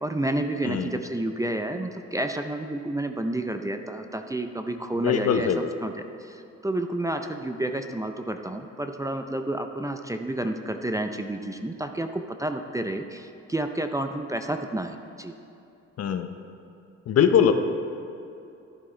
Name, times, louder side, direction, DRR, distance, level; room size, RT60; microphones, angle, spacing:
voice 1, 0.0-5.9 6.2-15.3, right 1 dB, 10° right, 6 dB, 0.5 m, -30 dB
voice 2, 0.6-0.9 5.0-5.7 16.0-16.3 17.1-17.5, left 8 dB, 55° left, 8 dB, 0.7 m, -21 dB
11.0 x 11.0 x 3.2 m, 2.7 s
cardioid pair, 90°, 30 cm